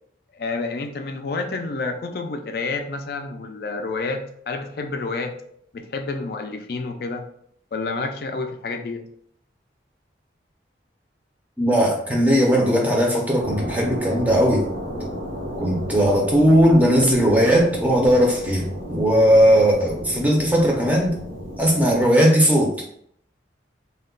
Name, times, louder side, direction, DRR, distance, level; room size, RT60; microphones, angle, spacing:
voice 1, 0.3-5.4 5.7-7.2 7.7-9.0, left 3 dB, 55° left, 5 dB, 0.3 m, -29 dB
voice 2, 11.6-14.7 15.6-21.1 21.6-22.7, equal, 10° right, -1 dB, 0.5 m, -18 dB
sound 1, 13.4-22.1, equal, 90° right, 0.8 m, -33 dB
2.3 x 2.1 x 3.6 m, 0.68 s
head